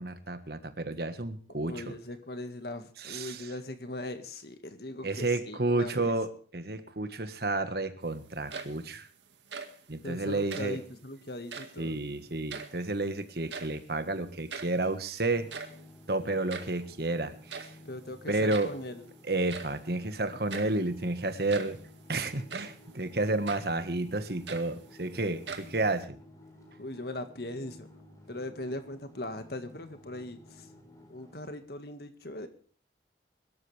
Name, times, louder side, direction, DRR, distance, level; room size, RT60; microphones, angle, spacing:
voice 1, 0.0-1.9 3.0-3.5 5.0-9.1 9.9-10.8 11.8-15.5 16.1-17.7 18.3-18.7 19.3-21.8 22.1-26.1, right 2 dB, 55° right, 10 dB, 1.5 m, -31 dB
voice 2, 1.6-6.1 10.0-12.0 17.9-19.1 26.8-27.9 28.3-30.7 31.1-32.5, left 1 dB, 60° left, 8 dB, 1.8 m, -40 dB
sound 1, 8.3-9.0 9.3-9.9 10.4-10.8 11.4-11.9 12.2-13.1 13.3-13.9 14.2-14.3 14.5-14.8 15.3-16.8 17.5-17.9 18.5-18.9 19.5-19.8 20.5-20.8 21.3-21.9 22.5-22.8 23.4-23.8 24.2-25.1 25.4-26.1, right 5 dB, 75° right, 2.0 m, -42 dB
sound 2, 15.3-31.4, left 1 dB, 20° left, 4.4 m, -54 dB
23.0 x 13.0 x 3.4 m, 0.43 s
head